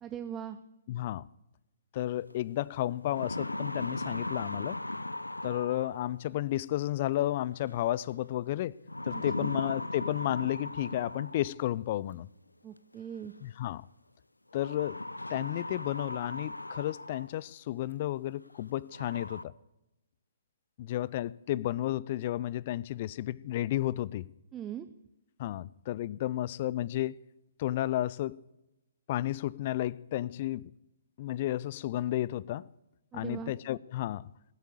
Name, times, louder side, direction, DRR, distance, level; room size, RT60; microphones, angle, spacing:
voice 1, 0.0-0.6 9.1-9.5 12.6-13.3 24.5-24.9 33.1-33.5, right 9 dB, 15° right, 0.6 m, -40 dB
voice 2, 0.9-1.2 1.9-4.8 5.4-8.7 9.0-12.3 13.4-13.8 14.5-15.0 15.3-19.5 20.8-24.3 25.4-27.2 27.6-28.4 29.1-30.7 31.2-32.6 33.1-34.3, left 14 dB, 40° left, 0.4 m, -32 dB
sound 1, 2.3-2.4 2.9-6.3 7.7-8.1 8.9-11.7 12.9-13.0 14.5-17.4 17.9-18.0 18.5-18.6 18.9-19.4, left 2 dB, 90° left, 0.6 m, -38 dB
20.0 x 8.3 x 7.0 m
figure-of-eight pair, 130°, 0 cm